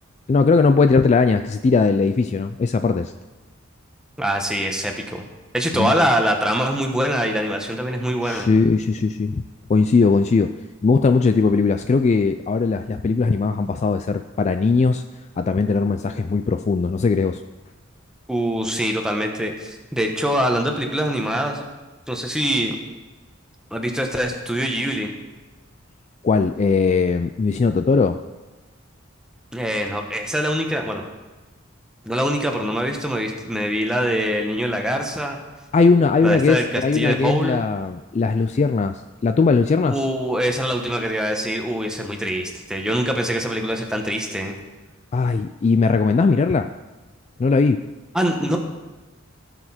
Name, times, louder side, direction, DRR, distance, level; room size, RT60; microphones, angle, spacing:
voice 1, 0.3-3.1 5.7-6.1 8.2-9.4 9.7-10.6 10.8-15.0 15.4-17.4 26.2-28.2 35.7-40.0 45.1-46.7 47.4-47.8, left 4 dB, 35° left, 9 dB, 0.3 m, -19 dB
voice 2, 4.2-5.3 5.5-8.5 18.3-21.7 22.1-22.8 23.7-25.1 29.5-31.0 32.0-35.4 36.2-37.6 39.9-44.6 48.1-48.6, equal, 5° right, 2 dB, 1.1 m, -24 dB
16.5 x 6.7 x 4.3 m, 1.2 s
head